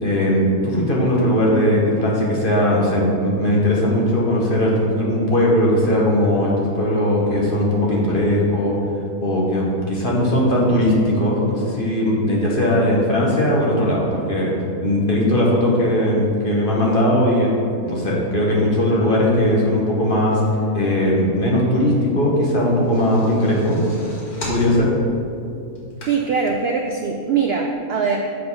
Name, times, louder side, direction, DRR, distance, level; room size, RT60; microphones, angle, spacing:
voice 1, 0.0-8.7 9.2-20.4 20.7-23.8 24.5-24.9, left 1 dB, 35° left, -4 dB, 1.4 m, -19 dB
sound 1, 22.6-26.5 27.0-27.1 27.4-27.5, left 1 dB, 75° left, 2.4 m, -34 dB
voice 2, 26.1-28.2, right 5 dB, 80° right, 2 dB, 0.5 m, -21 dB
7.3 x 4.8 x 5.5 m, 2.5 s
omnidirectional pair, 1.6 m